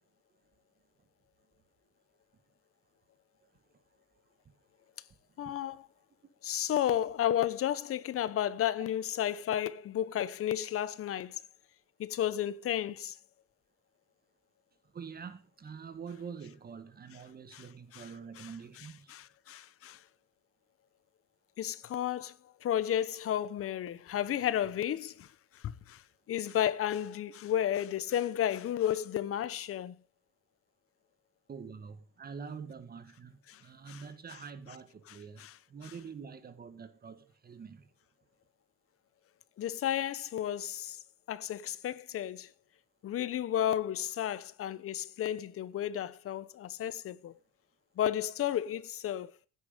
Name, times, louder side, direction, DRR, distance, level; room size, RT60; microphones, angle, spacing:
voice 1, 5.4-5.9 6.4-11.4 12.0-13.1 17.5-17.7 17.9-18.1 18.4-18.5 18.8-20.0 21.6-22.3 22.6-25.3 25.6-26.0 26.3-29.9 33.5-33.6 33.9-34.0 35.1-35.5 35.8-35.9 39.6-41.0 41.3-42.5 43.0-47.3 48.0-49.3, left 11 dB, 50° left, 1.0 m, -32 dB
voice 2, 14.9-19.1 31.5-35.4 35.7-37.9, right 6 dB, 30° right, 1.7 m, -46 dB
16.0 x 9.7 x 5.2 m
cardioid pair, 130°, 30 cm